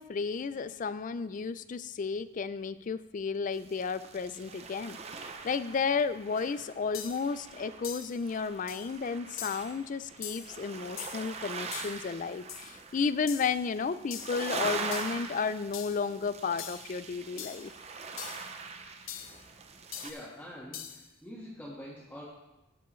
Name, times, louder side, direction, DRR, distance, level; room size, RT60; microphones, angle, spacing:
voice 1, 0.0-17.7, left 5 dB, 40° left, 14 dB, 0.3 m, -33 dB
sound 1, 3.5-20.1, right 4 dB, 35° right, 0.6 m, -42 dB
sound 2, 6.4-6.5 6.9-7.3 7.8-8.2 8.7-8.9 9.4-9.7 10.2-10.6 11.0-11.3 11.7-12.0 12.5-12.7 13.3-13.6 14.1-14.4 14.9-15.2 15.7-16.1 16.6-16.9 17.4-17.7 18.2-18.5 19.1-19.4 19.9-20.3 20.7-21.1, left 10 dB, 90° left, 0.7 m, -42 dB
voice 2, 20.0-22.3, equal, 10° left, -8 dB, 1.6 m, -45 dB
15.0 x 7.0 x 3.2 m, 1.0 s
head